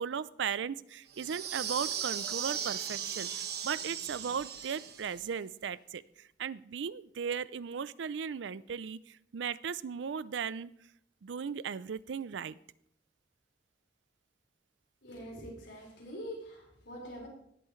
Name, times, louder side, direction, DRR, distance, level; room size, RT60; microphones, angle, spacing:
voice 1, 0.0-10.7 11.2-12.6, right 6 dB, 80° right, 18 dB, 0.4 m, -37 dB
sound 1, 1.1-5.2, right 8 dB, 55° right, 1.3 m, -37 dB
voice 2, 15.0-17.3, equal, 80° left, -3 dB, 4.8 m, -44 dB
18.5 x 8.3 x 3.2 m, 0.71 s
head